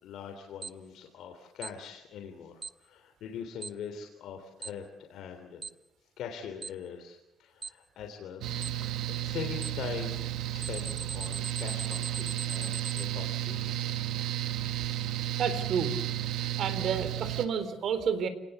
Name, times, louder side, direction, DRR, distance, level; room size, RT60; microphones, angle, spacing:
voice 1, 0.0-5.7 6.2-8.4 8.8-10.2 10.5-13.8, left 7 dB, 70° left, 4 dB, 3.2 m, -42 dB
Alarm, 0.6-0.7 1.6-1.7 2.6-2.7 3.6-3.7 4.6-4.7 5.6-5.7 6.6-6.7 7.6-7.7 8.6-8.7 9.6-9.7 10.6-13.0, right 5 dB, 30° right, 0.9 m, -38 dB
Mechanical fan, 8.4-17.5, right 13 dB, 80° right, 1.9 m, -33 dB
voice 2, 15.4-15.9 16.6-18.3, right 7 dB, 60° right, 11 dB, 3.7 m, -30 dB
30.0 x 19.5 x 8.1 m, 0.93 s
cardioid pair, 135°, 0 cm